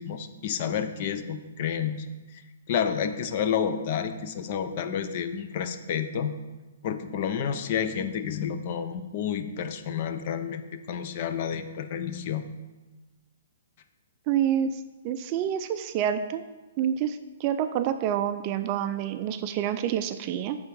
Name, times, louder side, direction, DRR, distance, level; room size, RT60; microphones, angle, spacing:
voice 1, 0.0-2.1 2.3-2.4 2.7-6.3 6.8-12.4, left 8 dB, 45° left, 9 dB, 0.6 m, -30 dB
voice 2, 14.3-14.7 15.0-16.4 16.8-20.6, right 9 dB, 35° right, 9 dB, 0.3 m, -27 dB
8.2 x 3.5 x 5.3 m, 1.2 s
hypercardioid pair, 150°, 0 cm